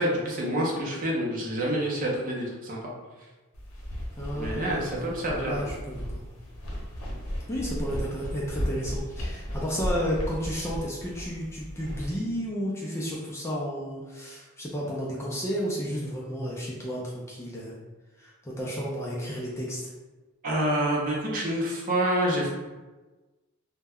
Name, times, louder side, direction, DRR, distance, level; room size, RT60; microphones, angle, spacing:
voice 1, 0.0-2.8 4.4-5.6 20.4-22.5, right 1 dB, 40° right, -3 dB, 0.5 m, -27 dB
sound 1, 3.5-12.1, equal, 75° left, 0.7 m, -35 dB
voice 2, 4.2-5.1 5.4-6.2 7.5-17.8 18.2-19.9, equal, 10° left, -5 dB, 0.3 m, -32 dB
2.1 x 2.1 x 3.4 m, 1.2 s
head